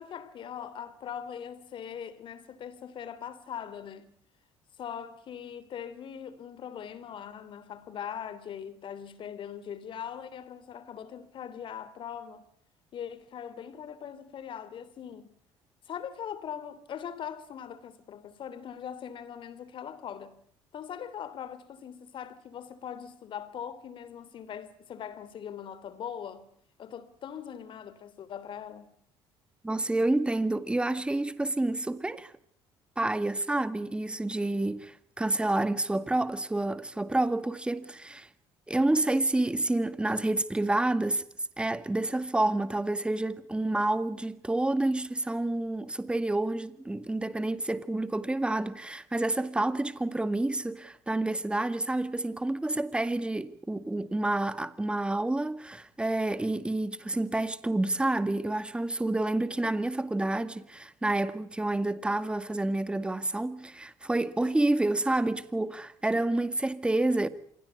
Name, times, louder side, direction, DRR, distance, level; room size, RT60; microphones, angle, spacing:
voice 1, 0.0-4.1 4.8-12.4 12.9-15.3 15.9-20.4 20.7-26.5 26.8-28.9, left 8 dB, 55° left, 3.3 m, -41 dB
voice 2, 29.6-32.3 33.0-38.3 38.7-41.2 41.6-67.3, right 2 dB, 10° right, 2.0 m, -29 dB
27.0 x 21.0 x 8.4 m
cardioid pair, 100°, 10 cm